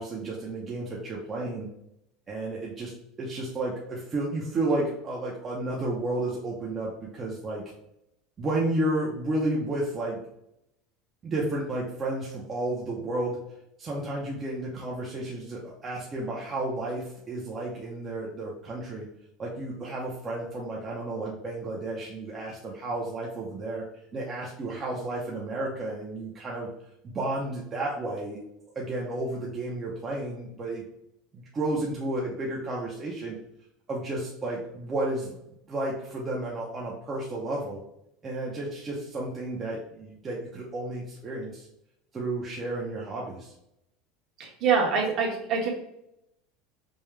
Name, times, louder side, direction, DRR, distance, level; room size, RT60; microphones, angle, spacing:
voice 1, 0.0-1.7 2.3-2.9 3.2-7.6 8.4-10.2 11.2-13.4 13.8-19.0 19.4-23.9 24.1-26.7 27.1-28.4 28.8-30.8 31.3-33.4 33.9-35.4 35.7-37.8 38.2-41.7 42.1-43.5, right 2 dB, 25° right, -4 dB, 0.7 m, -32 dB
voice 2, 44.4-45.7, right 5 dB, 50° right, -3 dB, 1.4 m, -25 dB
5.3 x 2.2 x 3.3 m, 0.80 s
supercardioid pair, 140°, 0 cm